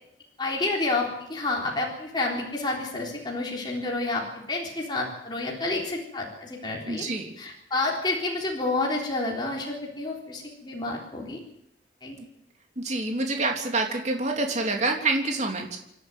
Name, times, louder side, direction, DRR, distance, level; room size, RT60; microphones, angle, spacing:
voice 1, 0.4-7.0 7.4-11.4 12.0-12.2, left 2 dB, 25° left, -2 dB, 3.8 m, -29 dB
voice 2, 6.9-7.3 12.8-15.8, right 2 dB, 40° right, 2 dB, 3.4 m, -27 dB
28.0 x 12.0 x 9.3 m, 0.78 s
head